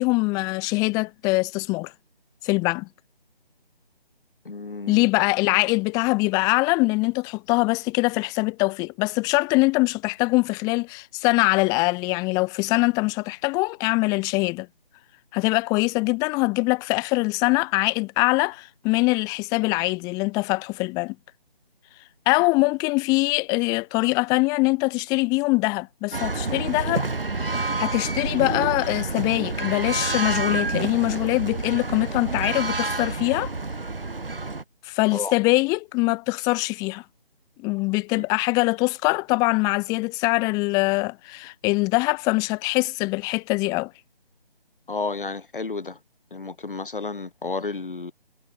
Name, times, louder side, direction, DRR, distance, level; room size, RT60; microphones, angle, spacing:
voice 1, 0.0-1.9 2.4-2.9 4.9-14.7 15.3-21.1 22.2-27.1 27.4-33.5 34.8-37.0 37.6-43.9, left 26 dB, 10° left, 3.4 m, -23 dB
voice 2, 4.5-5.1 35.1-35.4 38.1-38.3 44.9-46.0 46.3-48.1, left 3 dB, 60° left, 7.4 m, -32 dB
sound 1, 26.1-34.6, right 3 dB, 70° right, 4.4 m, -28 dB
figure-of-eight pair, 155°, 30 cm